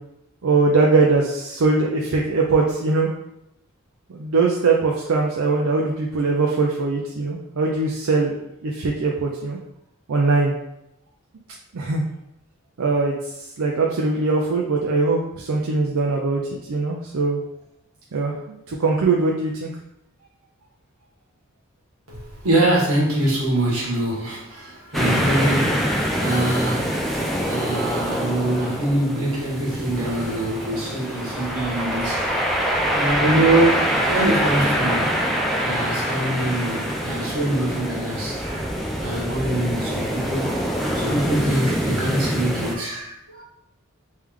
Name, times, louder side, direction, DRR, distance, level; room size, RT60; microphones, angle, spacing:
voice 1, 0.4-3.1 4.1-8.4 8.6-9.6 10.1-10.5 11.7-12.0 12.8-16.4 16.7-17.4 18.1-19.7, right 3 dB, 70° right, -1 dB, 0.5 m, -21 dB
voice 2, 22.1-40.6 40.9-43.4, right 1 dB, 90° right, -3 dB, 1.4 m, -24 dB
sound 1, 24.9-42.7, equal, ahead, 0.4 m, -24 dB
3.3 x 3.3 x 3.5 m, 0.83 s
head